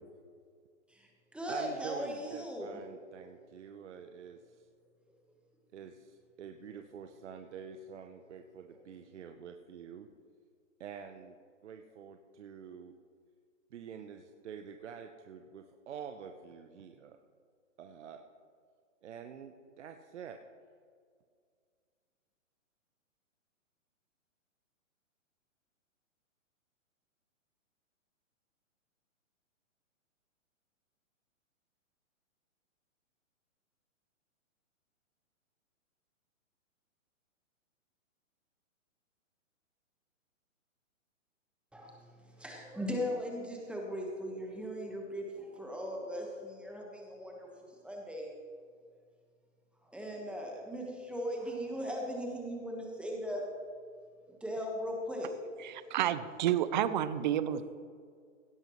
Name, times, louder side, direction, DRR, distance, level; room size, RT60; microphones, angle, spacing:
voice 1, 0.9-3.0 8.7-8.8 41.7-41.9 42.3-47.5 47.8-48.3 49.9-53.4 54.3-55.3, equal, 5° right, -1 dB, 1.3 m, -38 dB
voice 2, 1.5-4.4 5.7-10.1 10.8-11.3 11.6-12.9 13.7-17.2 17.8-18.2 19.0-20.4, right 7 dB, 60° right, 6 dB, 0.9 m, -47 dB
voice 3, 55.6-57.7, right 11 dB, 35° right, 14 dB, 0.6 m, -30 dB
17.0 x 11.0 x 3.1 m, 2.1 s
hypercardioid pair, 140°, 39 cm